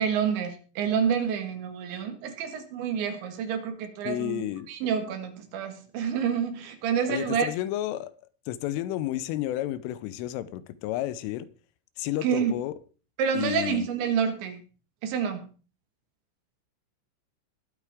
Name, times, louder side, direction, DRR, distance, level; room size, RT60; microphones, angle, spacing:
voice 1, 0.0-7.5 12.2-12.5 13.2-14.6 15.0-15.5, right 7 dB, 70° right, 3.9 m, -28 dB
voice 2, 4.0-4.7 7.1-8.1 8.5-11.5 12.0-12.7 13.3-13.9, left 14 dB, 90° left, 3.4 m, -31 dB
21.0 x 8.2 x 3.6 m
omnidirectional pair, 5.6 m